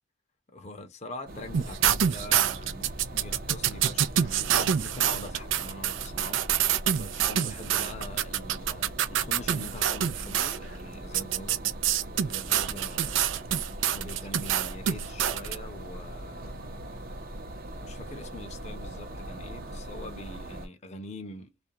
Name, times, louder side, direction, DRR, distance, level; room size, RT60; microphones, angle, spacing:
voice 1, 0.5-6.6 6.9-11.6 12.0-13.4 13.9-16.7 17.8-21.5, left 1 dB, 35° left, 0.6 m, -43 dB
sound 1, 1.3-20.7, right 1 dB, 50° right, 0.7 m, -41 dB
sound 2, 1.5-10.6 11.1-15.6, right 10 dB, 85° right, 0.4 m, -26 dB
2.4 x 2.2 x 2.8 m
head